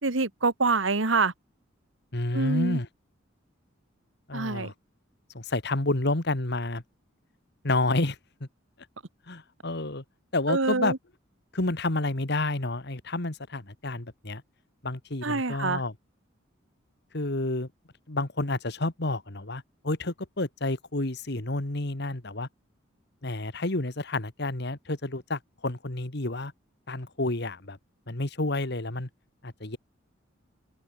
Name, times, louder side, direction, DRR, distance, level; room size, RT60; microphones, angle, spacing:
voice 1, 0.0-1.3 2.3-2.8 4.3-4.7 10.5-11.0 15.2-15.8, right 3 dB, 75° right, 1.7 m, -26 dB
voice 2, 2.1-2.9 4.3-4.7 5.3-6.8 7.6-8.5 9.3-10.0 10.3-10.9 11.5-14.4 14.8-15.9 17.1-17.7 18.1-22.5 23.2-26.5 26.9-27.8 28.1-29.1 29.4-29.8, left 2 dB, 60° left, 2.0 m, -30 dB
head